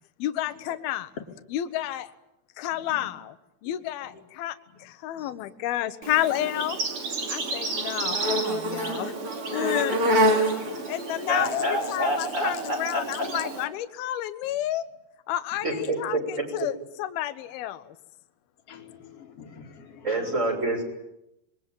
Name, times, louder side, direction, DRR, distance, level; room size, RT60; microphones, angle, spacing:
voice 1, 0.2-1.1 1.5-2.1 2.6-3.4 3.6-6.8 7.3-9.1 9.5-10.0 10.3-14.9 15.3-17.9, left 13 dB, 70° left, 11 dB, 2.9 m, -30 dB
Insect, 6.0-13.6, right 1 dB, 35° right, 3.4 m, -28 dB
voice 2, 11.3-13.0 15.6-16.4 20.0-20.8, right 1 dB, 15° right, 3 dB, 6.6 m, -27 dB
voice 3, 18.7-20.2, left 6 dB, 40° left, 1 dB, 3.4 m, -47 dB
27.0 x 23.5 x 9.1 m, 0.88 s
omnidirectional pair, 4.7 m